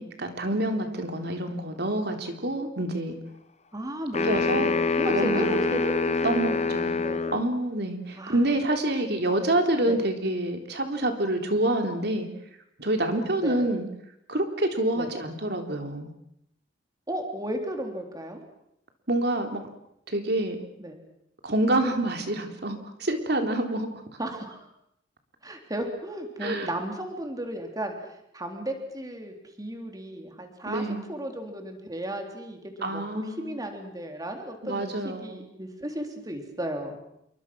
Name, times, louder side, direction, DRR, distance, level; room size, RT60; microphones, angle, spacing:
voice 1, 0.0-3.2 4.2-4.7 5.1-5.6 6.2-7.0 7.3-12.3 12.8-13.9 14.3-16.1 19.1-19.6 20.1-20.6 21.4-23.9 26.4-26.7 30.7-31.1 32.8-33.6 34.6-35.4, right 1 dB, 60° right, 5 dB, 3.6 m, -27 dB
voice 2, 3.7-7.4 8.2-8.5 9.0-9.4 9.8-10.0 13.4-13.7 15.0-15.1 17.1-18.4 20.8-21.0 24.2-24.7 25.4-28.0 28.3-30.8 31.1-37.0, right 1 dB, 20° right, 4 dB, 3.7 m, -34 dB
sound 1, 4.1-7.5, left 4 dB, 40° left, 1.1 m, -25 dB
28.5 x 23.0 x 6.3 m, 0.77 s
head